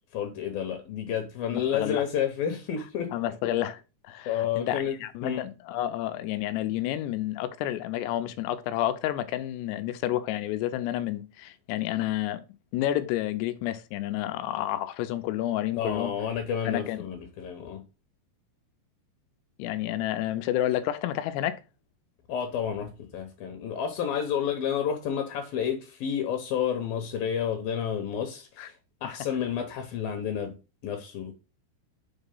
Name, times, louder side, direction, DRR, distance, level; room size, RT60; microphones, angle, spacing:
voice 1, 0.1-3.1 4.3-5.0 5.2-5.5 15.8-17.8 22.3-28.7 29.0-30.5 30.8-31.3, left 8 dB, 75° left, 2.4 m, -30 dB
voice 2, 1.5-2.0 3.1-12.4 12.7-16.1 16.7-17.0 19.6-21.6 28.6-28.7 29.0-29.1, left 13 dB, 90° left, 2.8 m, -30 dB
6.5 x 4.0 x 5.3 m
omnidirectional pair, 4.8 m